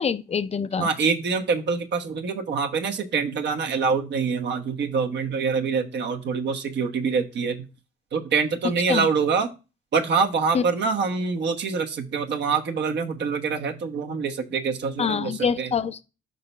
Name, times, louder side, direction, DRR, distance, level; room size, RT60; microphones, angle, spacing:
voice 1, 0.0-0.9 8.9-9.1 10.5-10.6 15.0-16.0, left 6 dB, 30° left, 0.5 m, -25 dB
voice 2, 0.8-7.6 8.1-9.5 9.9-15.7, right 5 dB, 60° right, 1.1 m, -25 dB
5.8 x 3.8 x 5.4 m
cardioid pair, 90°, 20 cm